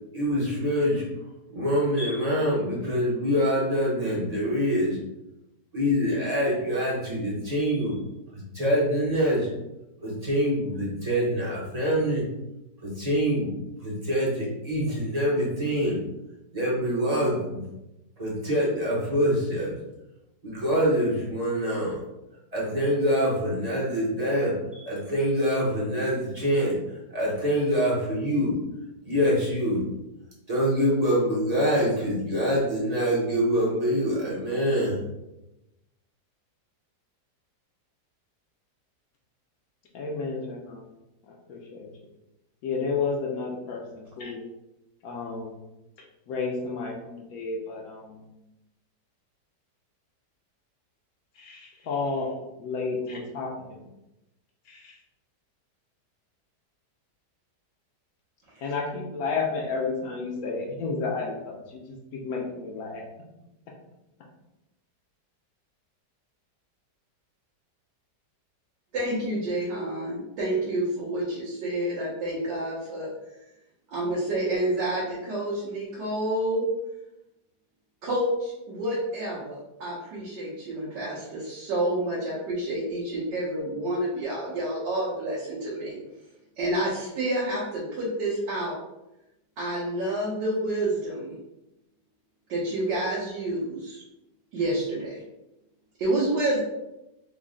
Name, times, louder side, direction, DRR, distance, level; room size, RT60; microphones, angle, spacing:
voice 1, 0.1-1.0 1.5-5.0 5.7-7.9 8.3-9.5 10.0-12.2 12.8-13.5 13.8-16.0 16.5-17.6 18.2-19.8 20.4-22.0 22.5-28.6 29.1-29.8 30.5-35.0, equal, 40° right, -6 dB, 0.5 m, -25 dB
voice 2, 39.9-40.9 41.3-41.9 42.6-44.4 45.0-45.5 46.3-48.2 51.4-52.3 52.6-53.8 54.7-55.0 58.6-63.0, left 4 dB, 70° left, -1 dB, 1.0 m, -31 dB
voice 3, 68.9-73.1 73.9-76.7 78.0-86.0 86.6-88.8 89.6-91.3 92.5-94.0 94.5-95.2 96.0-96.6, right 1 dB, 85° right, -7 dB, 1.5 m, -29 dB
3.7 x 2.1 x 3.6 m, 0.93 s
omnidirectional pair, 1.8 m